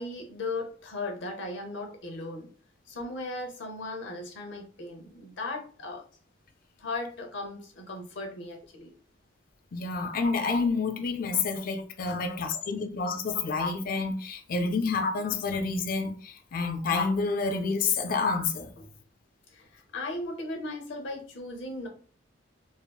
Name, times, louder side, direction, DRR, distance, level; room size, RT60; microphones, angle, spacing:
voice 1, 0.0-2.5 2.9-6.0 6.8-8.9 12.1-12.2 19.5-21.9, left 2 dB, 70° left, 0.8 m, -37 dB
voice 2, 9.7-18.7, left 4 dB, 45° left, 0.4 m, -29 dB
3.5 x 2.0 x 2.2 m
head